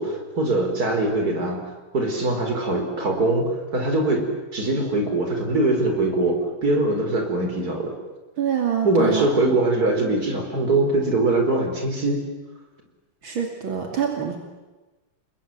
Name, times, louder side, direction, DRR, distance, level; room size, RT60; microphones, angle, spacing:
voice 1, 0.0-1.6 1.9-8.0 8.8-12.2, right 2 dB, 45° right, 3 dB, 5.2 m, -22 dB
voice 2, 8.4-9.3 13.2-14.4, right 8 dB, 75° right, 2 dB, 3.4 m, -25 dB
29.0 x 21.5 x 9.5 m, 1.2 s
omnidirectional pair, 2.2 m